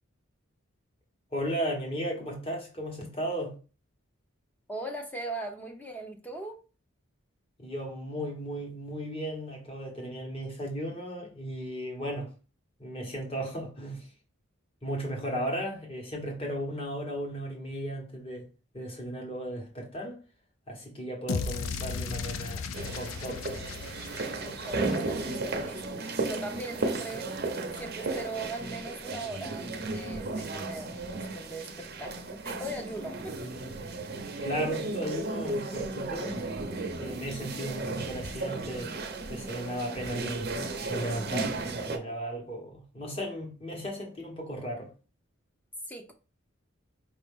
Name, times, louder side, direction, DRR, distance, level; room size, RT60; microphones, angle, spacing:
voice 1, 1.3-3.5 7.6-12.3 12.8-14.1 14.8-18.5 18.7-20.2 20.7-22.7 22.9-23.5 34.4-36.4 37.0-39.0 39.3-40.5 40.9-44.9, equal, 30° left, 1.3 m, -35 dB
voice 2, 4.7-6.6 24.4-33.4 45.9-46.1, right 2 dB, 10° left, 0.7 m, -40 dB
sound 1, 21.3-25.5, left 5 dB, 80° left, 0.5 m, -36 dB
sound 2, 22.7-42.0, right 3 dB, 50° right, 0.7 m, -34 dB
5.0 x 2.7 x 3.5 m
head